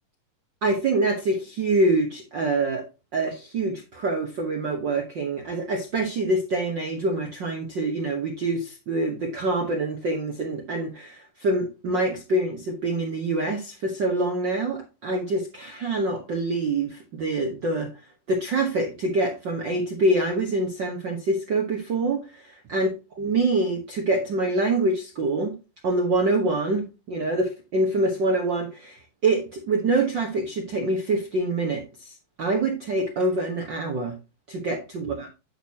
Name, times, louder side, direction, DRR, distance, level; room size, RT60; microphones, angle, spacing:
voice 1, 0.6-2.8 3.1-17.9 18.3-22.9 23.2-25.5 25.8-32.1 32.4-34.1 34.5-35.3, right 2 dB, 85° right, 2 dB, 1.0 m, -25 dB
10.0 x 6.3 x 2.8 m, 0.28 s
omnidirectional pair, 3.9 m